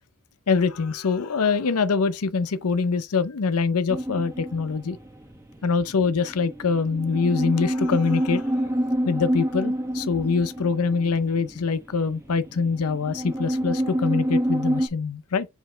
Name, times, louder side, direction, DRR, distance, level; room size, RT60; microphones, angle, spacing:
voice 1, 0.5-5.0 5.6-8.6 9.1-15.5, left 5 dB, 80° left, 0.6 m, -24 dB
sound 1, 3.9-14.9, equal, 10° right, 1.1 m, -28 dB
6.8 x 4.4 x 3.2 m
head